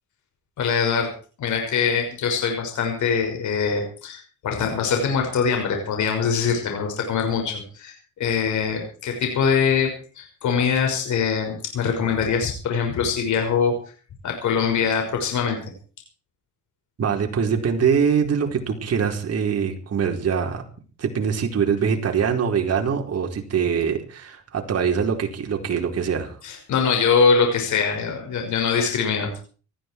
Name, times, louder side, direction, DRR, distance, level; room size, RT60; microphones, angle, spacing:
voice 1, 0.6-1.1 1.4-13.7 14.2-15.6 26.4-29.3, left 6 dB, 70° left, 3 dB, 6.1 m, -23 dB
voice 2, 17.0-20.6 21.0-26.3, right 6 dB, 55° right, 3 dB, 4.6 m, -23 dB
19.0 x 15.0 x 4.8 m, 0.40 s
cardioid pair, 90°, 30 cm